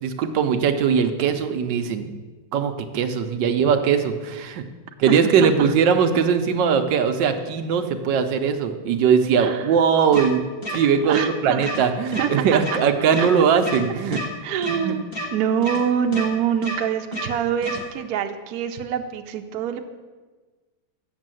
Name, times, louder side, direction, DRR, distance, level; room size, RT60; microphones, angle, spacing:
voice 1, 0.0-2.1 2.5-4.6 5.0-10.4 10.7-14.2 14.7-15.0, right 6 dB, 85° right, 7 dB, 1.4 m, -20 dB
sound 1, 10.1-10.3 10.6-10.8 11.1-11.3 11.6-11.8 12.1-12.3 12.6-12.8 13.1-13.3 13.6-13.8 14.1-14.3 14.6-14.8 15.1-15.3 15.6-15.8 16.1-16.3 16.6-16.8 17.1-17.3 17.6-17.8, equal, 35° left, 1.6 m, -29 dB
voice 2, 11.1-11.7 12.2-12.8 13.2-13.3 14.4-19.8, right 8 dB, 65° right, 6 dB, 1.1 m, -25 dB
7.3 x 6.8 x 7.6 m, 1.3 s
omnidirectional pair, 1.9 m